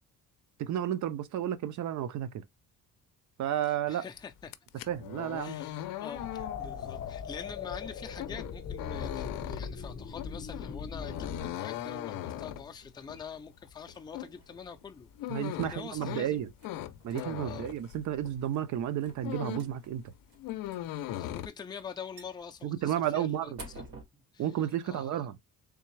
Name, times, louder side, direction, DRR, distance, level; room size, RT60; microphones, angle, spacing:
voice 1, 0.6-2.4 3.4-4.0 4.9-5.6 15.3-16.5 17.0-20.1 22.6-23.6 24.4-25.4, right 11 dB, 60° right, 0.6 m, -32 dB
voice 2, 3.9-4.9 5.3-16.4 17.4-17.7 21.2-23.8 24.1-24.5 24.8-25.2, left 6 dB, 15° left, 0.4 m, -45 dB
sound 1, 4.4-18.5 18.8-19.8 20.1-21.5, left 12 dB, 75° left, 0.5 m, -40 dB
sound 2, 6.2-11.5, left 6 dB, 40° left, 0.8 m, -40 dB
sound 3, 12.4-24.0, right 2 dB, 80° right, 2.0 m, -55 dB
3.6 x 3.3 x 3.1 m
cardioid pair, 165°, 34 cm